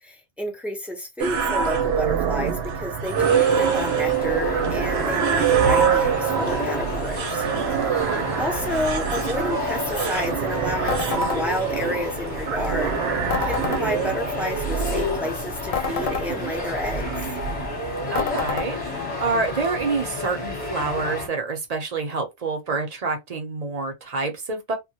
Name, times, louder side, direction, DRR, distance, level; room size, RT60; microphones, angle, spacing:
voice 1, 0.0-7.5 7.8-8.0 8.4-17.1, left 1 dB, ahead, 0.4 m, -30 dB
sound 1, 1.2-18.1, right 7 dB, 90° right, 0.8 m, -25 dB
sound 2, 3.1-21.3, left 3 dB, 35° left, 0.9 m, -31 dB
voice 2, 8.0-8.5 18.1-24.7, right 4 dB, 45° right, 0.6 m, -27 dB
sound 3, 10.9-11.4 13.3-13.8 15.7-16.3 18.1-18.7, left 6 dB, 70° left, 0.7 m, -27 dB
2.1 x 2.1 x 2.7 m
omnidirectional pair, 1.0 m